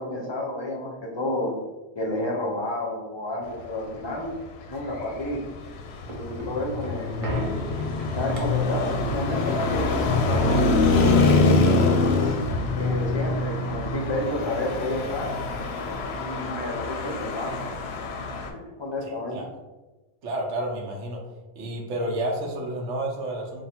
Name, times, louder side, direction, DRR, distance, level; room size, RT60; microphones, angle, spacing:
voice 1, 0.0-1.6 2.0-4.3 4.7-5.4 6.1-7.6 8.1-12.0 12.7-15.3 16.2-17.7 18.8-19.4, left 1 dB, 30° left, -1 dB, 0.5 m, -30 dB
Traffic noise roadway noise, 4.8-18.5, left 3 dB, 65° left, 0.8 m, -25 dB
sound 1, 5.6-14.3 14.7-14.8 15.0-16.4 16.9-17.0, right 1 dB, 35° right, 0.6 m, -39 dB
voice 2, 19.0-19.5 20.2-21.2 21.6-23.6, right 1 dB, 75° right, 0 dB, 1.1 m, -30 dB
3.4 x 2.4 x 4.2 m, 1.1 s
omnidirectional pair, 1.2 m